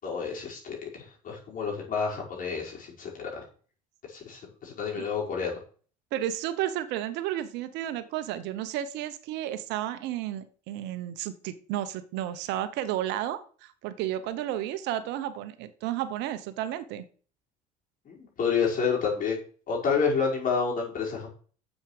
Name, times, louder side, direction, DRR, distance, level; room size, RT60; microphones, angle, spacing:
voice 1, 0.0-3.4 4.1-5.5 18.1-19.4 19.7-21.3, left 5 dB, 50° left, -2 dB, 5.3 m, -29 dB
voice 2, 6.1-17.0, right 12 dB, 70° right, 13 dB, 1.1 m, -32 dB
7.3 x 7.3 x 6.7 m, 0.43 s
supercardioid pair, 80°, 18 cm